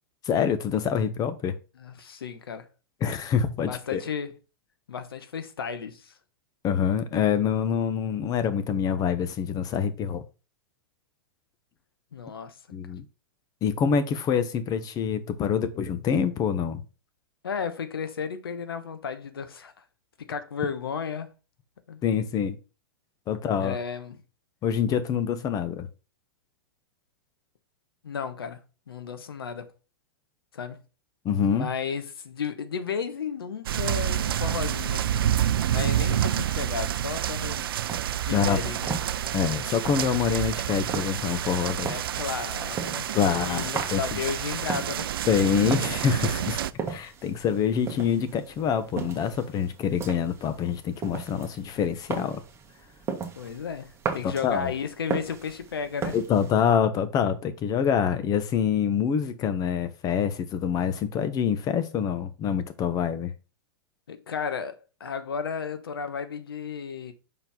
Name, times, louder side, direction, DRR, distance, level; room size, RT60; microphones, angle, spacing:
voice 1, 0.2-1.6 3.0-4.0 6.6-10.2 12.7-13.0 13.6-16.8 22.0-22.6 23.3-23.8 24.6-25.9 31.2-31.7 38.3-38.6 39.3-41.9 43.1-44.2 45.3-46.6 46.9-52.4 54.2-54.7 56.1-63.3, left 7 dB, 30° left, 1.0 m, -26 dB
voice 2, 1.8-2.7 3.7-4.3 4.9-6.2 12.1-12.6 17.4-19.7 20.2-21.3 21.9-22.0 23.6-24.2 28.0-28.6 28.9-29.7 30.5-30.8 31.5-35.4 35.7-37.7 38.3-39.0 41.6-43.1 43.5-45.1 53.4-56.2 64.1-67.1, left 6 dB, 80° left, 1.1 m, -33 dB
sound 1, 33.7-46.7, right 11 dB, 75° right, 0.4 m, -28 dB
sound 2, 37.2-56.8, right 5 dB, 20° right, 1.5 m, -38 dB
5.5 x 4.5 x 4.0 m
hypercardioid pair, 110°, 12 cm